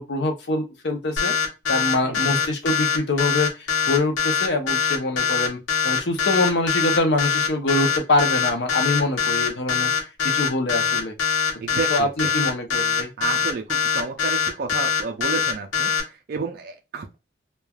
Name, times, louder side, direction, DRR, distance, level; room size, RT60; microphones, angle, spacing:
voice 1, 0.0-1.3 1.7-5.6 5.8-9.9 10.3-11.1 11.9-13.1, left 2 dB, 60° left, 4 dB, 0.7 m, -24 dB
sound 1, 1.2-16.0, left 6 dB, 85° left, 0.9 m, -22 dB
voice 2, 2.0-2.5 11.6-12.3 13.0-17.2, right 4 dB, 50° right, 3 dB, 0.3 m, -31 dB
3.1 x 2.2 x 2.3 m, 0.27 s
head